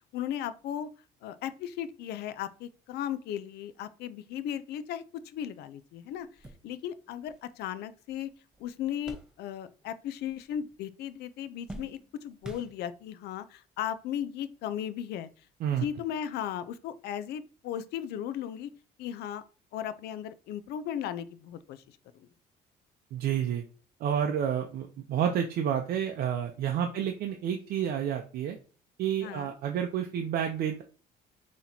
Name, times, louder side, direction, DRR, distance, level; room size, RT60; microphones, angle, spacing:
voice 1, 0.1-0.9 1.2-6.3 6.6-8.3 8.6-15.3 15.8-18.7 19.0-19.4 19.7-22.3 26.9-27.1 29.2-29.6, left 10 dB, 75° left, 0.4 m, -36 dB
sound 1, 6.1-9.9 10.2-10.9 11.2-13.2 14.0-14.1 15.4-15.5, right 1 dB, 5° right, 0.9 m, -49 dB
voice 2, 23.1-23.6 24.0-28.6 29.0-30.8, right 9 dB, 65° right, 0.6 m, -30 dB
5.7 x 3.0 x 2.7 m
cardioid pair, 110°, 17 cm